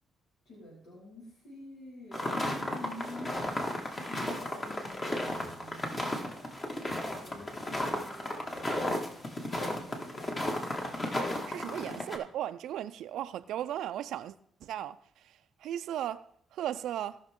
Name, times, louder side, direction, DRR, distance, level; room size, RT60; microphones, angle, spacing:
voice 1, 0.4-6.0 6.9-9.0 9.4-10.3, left 1 dB, 75° left, 4.8 m, -48 dB
sound 1, 2.1-12.2, left 1 dB, 30° left, 2.1 m, -34 dB
voice 2, 11.5-14.4 14.6-17.2, right 11 dB, 80° right, 0.4 m, -37 dB
18.0 x 6.1 x 3.7 m
cardioid pair, 90°, 0 cm